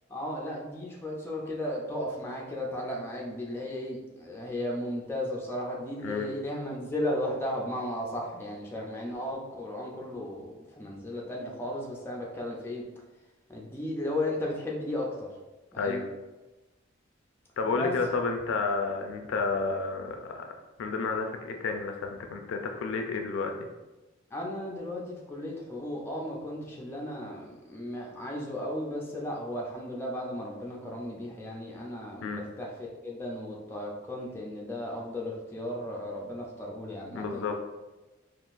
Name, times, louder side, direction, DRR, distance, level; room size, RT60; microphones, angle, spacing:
voice 1, 0.1-12.8 13.5-15.3 15.7-16.0 17.7-17.9 24.3-37.5, left 1 dB, 10° left, -3 dB, 0.4 m, -35 dB
voice 2, 17.6-20.5 20.8-23.5 32.2-32.4 37.1-37.5, left 4 dB, 75° left, 4 dB, 0.4 m, -31 dB
3.7 x 2.4 x 2.5 m, 1.1 s
head